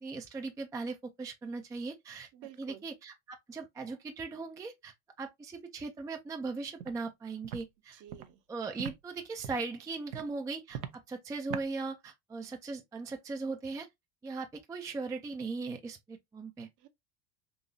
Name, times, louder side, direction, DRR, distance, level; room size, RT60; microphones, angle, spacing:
voice 1, 0.0-2.3 2.6-8.0 8.5-13.9 14.2-16.7, right 3 dB, 10° right, 0.3 m, -39 dB
voice 2, 2.3-2.9 7.9-8.4 16.8-16.9, right 11 dB, 45° right, 0.8 m, -51 dB
Walk footsteps, 6.8-6.9 7.4-7.6 8.1-8.2 8.8-8.9 9.4-9.7 10.1-10.3 10.7-11.0 11.5-11.7, right 9 dB, 80° right, 0.7 m, -39 dB
3.9 x 2.8 x 2.6 m
hypercardioid pair, 80°, 43 cm